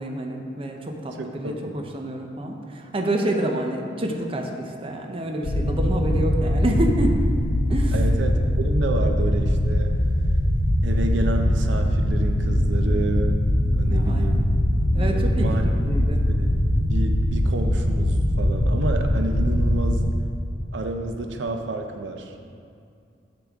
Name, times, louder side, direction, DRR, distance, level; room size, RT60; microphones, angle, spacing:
voice 1, 0.0-7.2 7.7-8.0 13.9-14.4 14.9-16.2, right 1 dB, 30° right, 2 dB, 0.6 m, -28 dB
voice 2, 1.2-1.9 7.9-10.0 10.8-13.4 13.8-14.5 15.1-15.7 16.0-16.1 16.4-20.0 20.7-22.3, right 2 dB, 80° right, 5 dB, 0.6 m, -30 dB
sound 1, 5.4-20.1, equal, 60° left, 0.6 m, -21 dB
7.9 x 6.8 x 3.6 m, 2.4 s
head